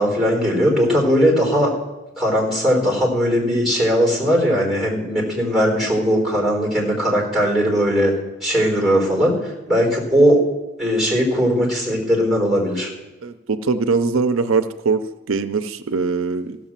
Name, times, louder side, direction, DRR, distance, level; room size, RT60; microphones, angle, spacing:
voice 1, 0.0-1.7 2.2-8.1 8.4-10.4 10.8-12.9, equal, ahead, -2 dB, 4.0 m, -19 dB
voice 2, 13.2-16.6, right 4 dB, 80° right, 10 dB, 0.6 m, -22 dB
15.5 x 6.1 x 7.3 m, 1.1 s
head